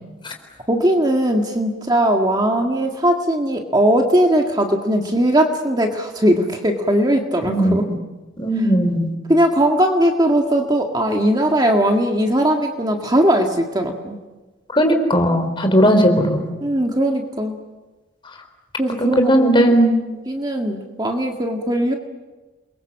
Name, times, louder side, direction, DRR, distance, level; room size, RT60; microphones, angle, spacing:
voice 1, 0.7-7.9 9.3-14.2 16.6-17.5 18.8-19.7 20.3-21.9, right 1 dB, 20° right, 2 dB, 1.9 m, -19 dB
voice 2, 7.4-7.8 8.4-9.1 14.7-16.5 19.0-19.9, equal, 25° left, 5 dB, 4.0 m, -17 dB
29.0 x 22.5 x 7.4 m, 1.2 s
head